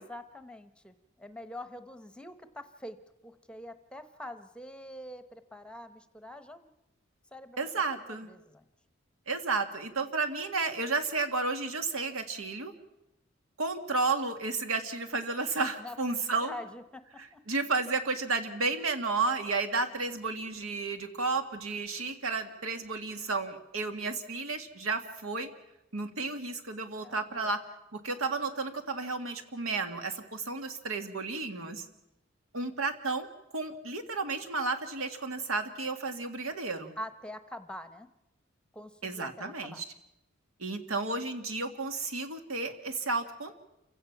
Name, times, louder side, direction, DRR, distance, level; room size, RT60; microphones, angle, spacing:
voice 1, 0.0-3.0 3.2-6.7 7.3-8.6 15.8-17.4 27.0-27.5 37.0-38.1 38.7-39.8, left 1 dB, 5° left, 11 dB, 0.8 m, -45 dB
voice 2, 7.6-8.3 9.3-12.7 13.6-16.5 17.2-25.5 25.9-27.6 27.9-31.9 32.5-33.3 33.5-36.9 39.0-39.8 40.6-43.6, right 3 dB, 90° right, 7 dB, 1.8 m, -32 dB
28.5 x 16.5 x 5.9 m, 0.89 s
head